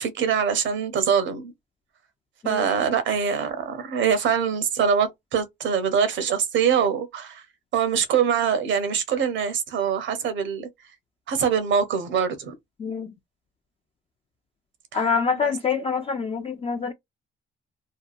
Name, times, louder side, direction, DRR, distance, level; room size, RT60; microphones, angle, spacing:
voice 1, 0.0-1.5 2.4-7.4 7.7-10.7 11.3-12.5 15.4-15.5, right 7 dB, 70° right, 0.8 m, -23 dB
voice 2, 12.8-13.1 14.9-16.9, left 5 dB, 30° left, 0.4 m, -26 dB
2.7 x 2.2 x 2.5 m
cardioid pair, 90°, 20 cm